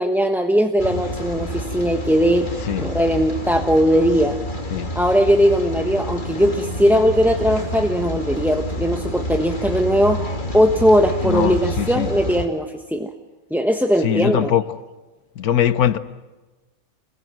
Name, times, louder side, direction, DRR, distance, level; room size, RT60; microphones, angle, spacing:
voice 1, 0.0-2.5 2.8-4.4 4.9-10.2 10.5-13.1 13.5-14.5, equal, ahead, 1.0 m, -19 dB
Rain, 0.8-12.5, equal, 35° left, 2.6 m, -28 dB
voice 2, 2.6-2.9 4.7-4.9 11.2-12.1 14.0-14.8 15.3-16.0, left 10 dB, 85° left, 1.5 m, -21 dB
28.0 x 21.5 x 7.5 m
omnidirectional pair, 1.5 m